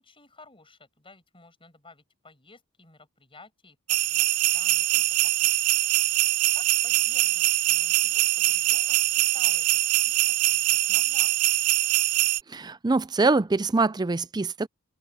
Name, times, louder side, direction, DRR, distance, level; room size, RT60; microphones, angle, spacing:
voice 1, 0.0-5.8 6.5-9.8 10.0-11.6, left 3 dB, 25° left, 7.3 m, -53 dB
sound 1, 3.9-12.4, right 17 dB, 85° right, 0.6 m, -23 dB
voice 2, 12.5-14.7, right 3 dB, 20° right, 0.4 m, -24 dB
head